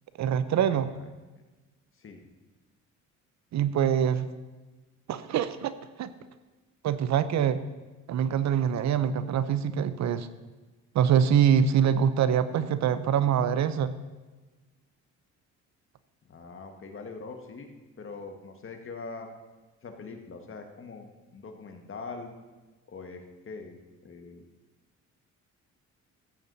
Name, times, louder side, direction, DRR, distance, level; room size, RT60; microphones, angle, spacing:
voice 1, 0.2-0.9 3.5-4.3 5.1-5.7 6.0-6.1 6.8-7.6 8.1-10.3 10.9-13.9, right 8 dB, 65° right, 14 dB, 0.7 m, -24 dB
voice 2, 0.7-1.1 2.0-2.2 16.3-17.7 18.0-19.3 19.8-22.3 22.9-24.4, left 4 dB, 45° left, 4 dB, 1.6 m, -43 dB
14.5 x 8.2 x 4.0 m, 1.2 s
cardioid pair, 90°, 30 cm